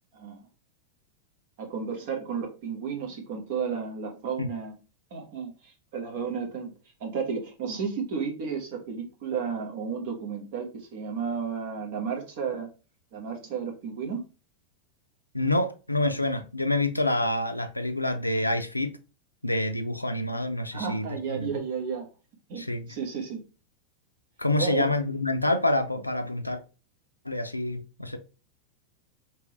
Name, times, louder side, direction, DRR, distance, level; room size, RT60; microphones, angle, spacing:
voice 1, 0.1-0.4 1.6-4.7 5.1-6.7 7.0-12.7 13.1-14.2 20.7-22.1 22.5-23.4 24.5-24.9, right 6 dB, 50° right, 1.2 m, -33 dB
voice 2, 15.3-19.0 19.4-21.6 22.6-22.9 24.4-26.6 27.2-28.2, left 2 dB, 85° left, 0.4 m, -27 dB
3.6 x 3.1 x 3.0 m
figure-of-eight pair, 90°, 0 cm